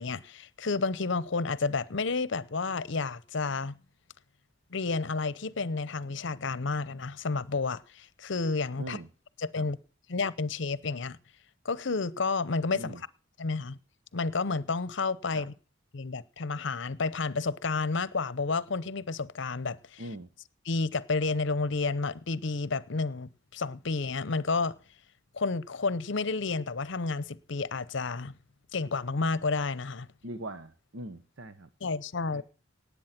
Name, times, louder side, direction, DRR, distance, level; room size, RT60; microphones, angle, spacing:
voice 1, 0.0-3.8 4.7-9.0 9.4-9.8 10.1-11.2 11.6-13.0 13.4-13.8 14.1-15.5 15.9-20.0 20.7-24.8 25.3-28.3 28.7-30.1 31.8-32.4, left 4 dB, 65° left, 0.8 m, -31 dB
voice 2, 8.8-9.1 9.6-9.7 12.7-13.0 15.3-15.5 20.0-20.3 30.2-31.7 32.3-32.4, right 1 dB, 85° right, 1.1 m, -41 dB
18.5 x 8.3 x 5.9 m
head